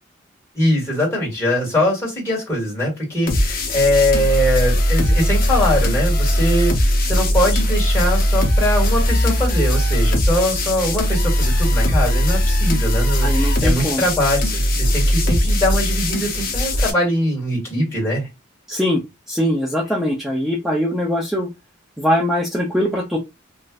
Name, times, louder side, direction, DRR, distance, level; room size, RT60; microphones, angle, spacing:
voice 1, 0.5-18.3, left 1 dB, 15° left, -5 dB, 1.9 m, -22 dB
sound 1, 3.3-16.9, equal, 45° left, 0.7 m, -19 dB
voice 2, 13.2-14.0 18.7-21.5 22.0-23.2, equal, ahead, -2 dB, 0.5 m, -21 dB
3.2 x 2.5 x 2.3 m, 0.22 s
head